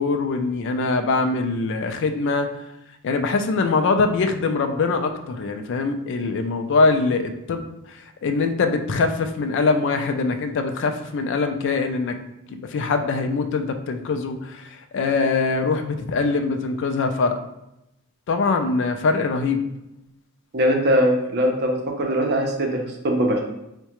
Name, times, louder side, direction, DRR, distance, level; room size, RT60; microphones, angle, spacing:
voice 1, 0.0-2.5 3.0-7.7 8.2-12.2 12.5-17.4 18.3-19.6, left 4 dB, 55° left, 7 dB, 0.3 m, -23 dB
voice 2, 20.5-23.4, equal, 50° right, 1 dB, 0.6 m, -21 dB
4.6 x 2.2 x 2.9 m, 0.87 s
head